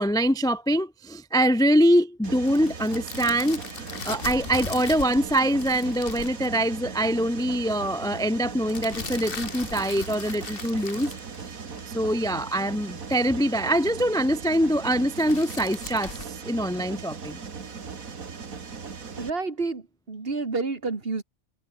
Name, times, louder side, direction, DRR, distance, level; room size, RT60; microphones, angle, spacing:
voice 1, 0.0-3.6 4.0-11.1 11.9-16.2 16.4-17.4, equal, 5° left, 0.4 m, -24 dB
Mechanisms, 2.2-19.3, right 5 dB, 80° right, 2.4 m, -39 dB
sound 1, 2.4-6.6 8.7-11.9 14.9-16.3, left 5 dB, 40° left, 1.6 m, -38 dB
voice 2, 19.2-21.2, right 3 dB, 45° right, 2.3 m, -29 dB
omnidirectional pair, 1.4 m